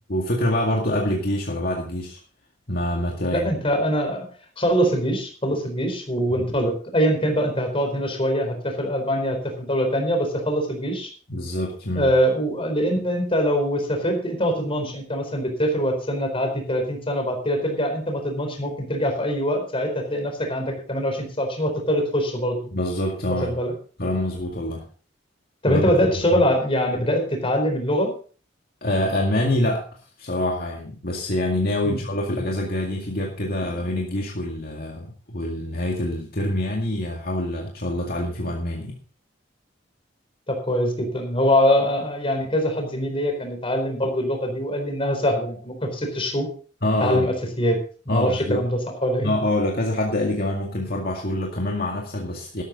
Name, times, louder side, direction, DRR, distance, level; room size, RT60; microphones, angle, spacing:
voice 1, 0.1-2.2 2.7-3.5 11.3-12.1 22.7-23.5 24.0-24.8 25.7-26.4 28.8-29.9 30.2-38.9 46.8-47.3 48.1-48.7 49.2-52.6, left 1 dB, 55° left, 0 dB, 2.1 m, -25 dB
voice 2, 3.3-4.2 4.6-11.1 11.9-22.6 23.4-23.7 25.6-28.1 31.8-32.0 40.5-46.5 47.0-47.8 48.1-49.4, equal, 30° left, 4 dB, 4.4 m, -23 dB
13.0 x 12.5 x 4.0 m, 0.39 s
head